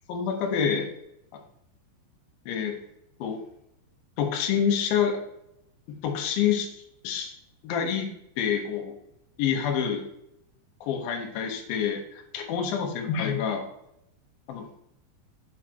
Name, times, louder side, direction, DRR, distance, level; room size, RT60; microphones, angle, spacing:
voice 1, 0.1-0.9 1.3-1.4 2.5-2.7 3.2-3.4 4.2-5.2 5.9-7.3 7.6-8.1 8.4-8.9 9.4-10.1 10.8-13.7 14.5-14.7, left 7 dB, 75° left, 2 dB, 2.3 m, -27 dB
9.0 x 6.0 x 2.8 m, 0.79 s
omnidirectional pair, 5.2 m